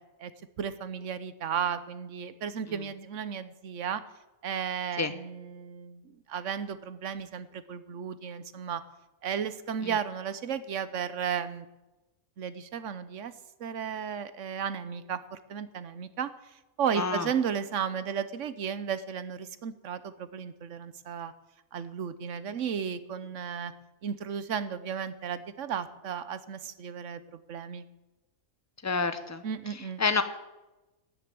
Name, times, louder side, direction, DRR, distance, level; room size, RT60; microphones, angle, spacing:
voice 1, 0.6-4.0 4.4-6.0 6.3-8.8 9.2-11.7 12.4-13.3 13.6-16.3 16.8-21.3 21.7-23.7 24.0-27.8 29.4-30.0, right 7 dB, 65° right, 14 dB, 1.2 m, -34 dB
voice 2, 17.0-17.3 28.8-29.4 30.0-30.2, left 4 dB, 15° left, 10 dB, 0.8 m, -28 dB
13.0 x 8.0 x 9.4 m, 1.0 s
omnidirectional pair, 1.4 m